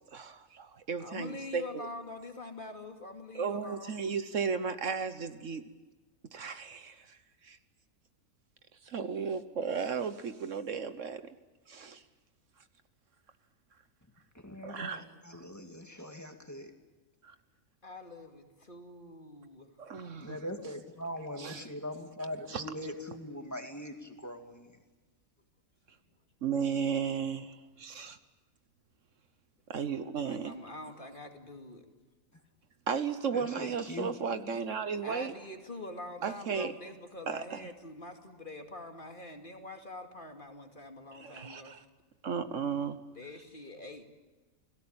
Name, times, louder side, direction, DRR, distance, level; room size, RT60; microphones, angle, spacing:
voice 1, 0.1-1.9 3.3-5.6 6.3-7.2 7.4-7.6 8.8-11.2 11.7-12.0 14.6-15.1 15.3-15.4 17.2-17.3 19.8-20.4 21.4-21.7 22.5-22.6 26.4-28.2 29.7-30.5 32.9-35.3 36.2-36.7 37.3-37.7 41.2-41.8 42.2-43.0, right 6 dB, 65° right, 11 dB, 1.4 m, -34 dB
voice 2, 1.0-4.0 17.8-19.8 30.2-31.9 35.0-41.7 43.1-44.0, left 2 dB, 35° left, 4 dB, 2.6 m, -45 dB
voice 3, 14.4-16.7 20.2-24.7 33.3-34.2, left 1 dB, 10° left, 4 dB, 2.4 m, -41 dB
29.0 x 18.0 x 8.7 m, 1.2 s
omnidirectional pair, 1.4 m